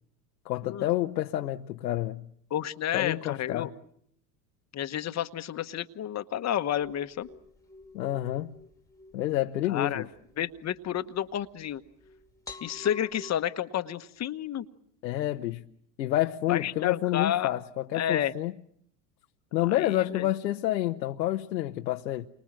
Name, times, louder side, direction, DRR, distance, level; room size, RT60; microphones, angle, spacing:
voice 1, 0.4-2.3 2.9-3.7 7.9-8.5 9.1-10.1 15.0-15.6 16.0-18.5 19.5-22.3, left 14 dB, 85° left, 1.0 m, -29 dB
voice 2, 2.5-3.7 4.7-7.3 9.7-10.0 10.4-11.8 12.6-14.6 16.5-17.6 17.9-18.3 19.6-20.2, left 10 dB, 35° left, 1.2 m, -30 dB
sound 1, 6.8-13.3, left 3 dB, 5° left, 1.9 m, -50 dB
29.5 x 24.5 x 7.5 m
hypercardioid pair, 95°, 50 cm